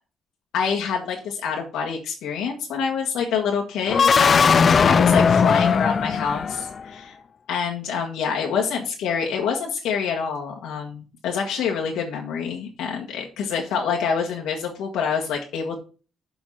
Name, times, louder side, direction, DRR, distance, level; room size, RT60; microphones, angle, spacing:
voice 1, 0.5-7.2 7.5-15.8, left 6 dB, 90° left, 0 dB, 1.5 m, -26 dB
sound 1, 3.9-6.9, left 6 dB, 45° left, 0.3 m, -18 dB
7.1 x 4.8 x 5.5 m, 0.36 s
cardioid pair, 90°, 0 cm